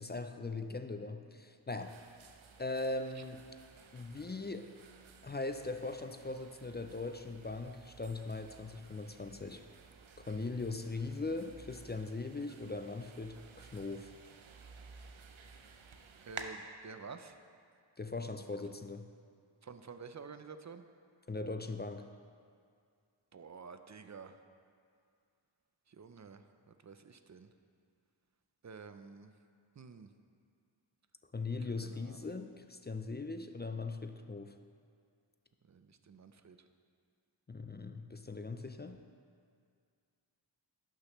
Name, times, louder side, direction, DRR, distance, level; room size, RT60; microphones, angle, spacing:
voice 1, 0.0-2.0 2.6-3.5 3.9-4.7 5.2-9.7 10.2-14.1 18.0-19.1 21.3-22.1 31.3-34.6 37.5-39.0, left 3 dB, 25° left, 7 dB, 0.3 m, -40 dB
sound 1, 1.8-16.5, right 6 dB, 80° right, 0.6 m, -54 dB
voice 2, 16.2-17.4 19.6-20.8 23.3-24.4 25.9-26.4 26.8-27.5 28.6-29.3 29.8-30.1 31.6-32.4 35.7-36.6, right 5 dB, 40° right, 9 dB, 0.5 m, -50 dB
11.5 x 6.5 x 3.1 m, 2.3 s
wide cardioid pair, 50°, 47 cm